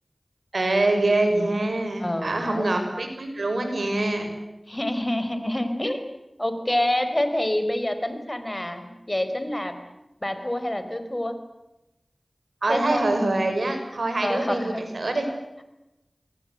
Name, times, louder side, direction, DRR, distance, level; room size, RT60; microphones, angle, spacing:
voice 1, 0.5-4.3 12.6-15.3, right 2 dB, 85° right, 5 dB, 6.3 m, -24 dB
voice 2, 2.0-2.7 4.7-6.0 6.4-9.7 10.2-11.4 12.7-13.1 14.2-14.9, left 1 dB, 25° left, 9 dB, 4.6 m, -27 dB
26.5 x 22.5 x 8.0 m, 0.95 s
wide cardioid pair, 40°, 0 cm